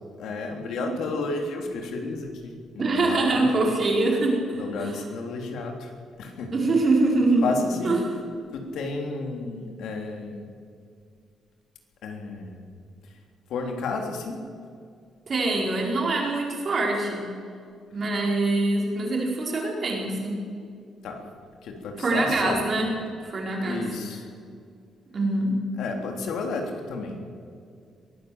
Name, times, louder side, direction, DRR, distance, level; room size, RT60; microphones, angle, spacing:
voice 1, 0.2-3.4 4.5-5.9 6.2-6.5 7.4-8.0 8.5-10.5 12.0-12.7 13.5-14.4 21.0-21.2 21.6-22.6 23.6-24.3 25.8-27.2, left 3 dB, 65° left, 3 dB, 3.3 m, -32 dB
voice 2, 2.8-5.0 6.5-7.4 7.8-8.0 15.3-17.3 17.9-20.4 22.0-22.9 23.2-23.9 25.1-25.5, right 2 dB, 30° right, -1 dB, 4.8 m, -24 dB
22.5 x 16.5 x 8.0 m, 2.3 s
cardioid pair, 180°, 0 cm